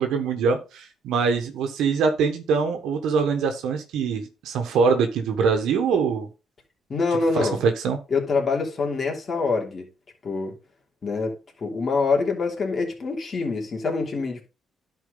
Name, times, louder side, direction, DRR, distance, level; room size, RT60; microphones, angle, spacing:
voice 1, 0.0-6.3 7.4-8.0, right 5 dB, 85° right, 1.3 m, -23 dB
voice 2, 6.9-7.6 8.1-9.8 10.2-10.5 11.0-14.4, left 4 dB, 40° left, 3.0 m, -25 dB
11.0 x 4.7 x 3.9 m
cardioid pair, 90°, 0 cm